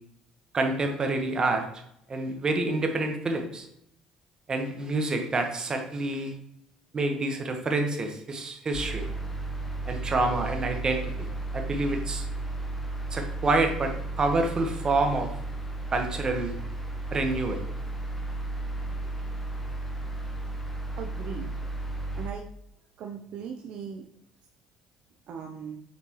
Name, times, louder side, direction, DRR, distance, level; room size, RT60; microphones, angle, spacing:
voice 1, 0.5-1.7 2.1-3.7 4.5-6.3 6.9-9.1 9.8-11.1 11.5-12.2 13.1-15.3 15.9-16.5 17.1-17.6, right 2 dB, 35° right, 4 dB, 1.3 m, -27 dB
sound 1, 8.7-22.3, right 2 dB, 10° left, 1.2 m, -34 dB
voice 2, 21.0-21.5 22.2-22.4 23.0-24.1 25.3-25.8, right 6 dB, 65° right, 2 dB, 0.7 m, -38 dB
7.0 x 4.4 x 3.1 m, 0.74 s
hypercardioid pair, 70°, 2 cm